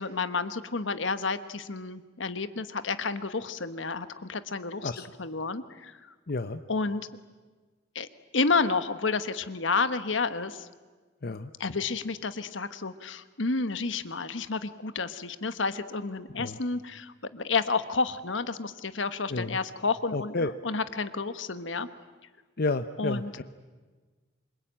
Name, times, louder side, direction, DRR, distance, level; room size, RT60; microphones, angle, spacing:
voice 1, 0.0-4.9 5.2-6.0 6.7-7.1 7.9-8.1 8.3-10.7 11.6-21.9 23.0-23.4, left 4 dB, 75° left, 11 dB, 1.3 m, -30 dB
voice 2, 6.3-6.6 11.2-11.5 16.3-16.6 19.3-19.6 20.1-20.5 22.6-23.4, left 3 dB, 55° left, 9 dB, 0.8 m, -31 dB
27.0 x 24.0 x 8.9 m, 1.4 s
head